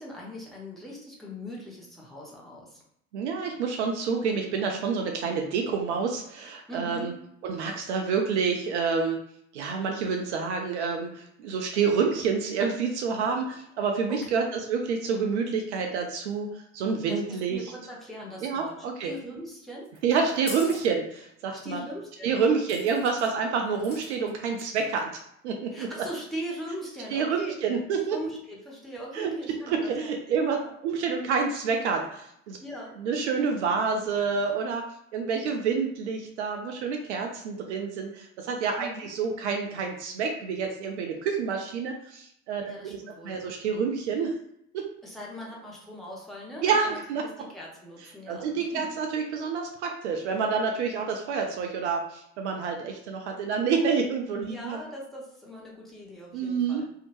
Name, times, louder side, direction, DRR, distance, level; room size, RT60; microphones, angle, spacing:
voice 1, 0.0-2.8 6.7-7.2 14.1-14.4 17.1-18.8 19.0-19.9 20.2-20.4 20.7-20.8 21.5-22.4 22.9-23.0 25.7-27.5 28.1-30.1 30.6-30.7 32.6-33.0 38.8-39.1 42.6-43.5 45.0-48.9 54.4-56.9, equal, ahead, -5 dB, 0.9 m, -40 dB
voice 2, 3.1-7.1 7.4-9.2 9.5-17.7 18.4-19.1 20.0-21.8 22.2-25.1 25.4-25.9 27.1-28.2 29.1-29.3 29.6-30.6 30.8-32.6 33.0-34.8 35.1-44.3 44.7-44.9 46.6-47.2 48.3-54.8 56.3-56.8, right 5 dB, 65° right, 3 dB, 0.5 m, -28 dB
sound 1, 19.8-20.9 22.7-23.3 23.7-24.3 24.6-25.0, left 1 dB, 15° left, 1.3 m, -42 dB
2.7 x 2.0 x 2.9 m, 0.73 s
figure-of-eight pair, 60°, 37 cm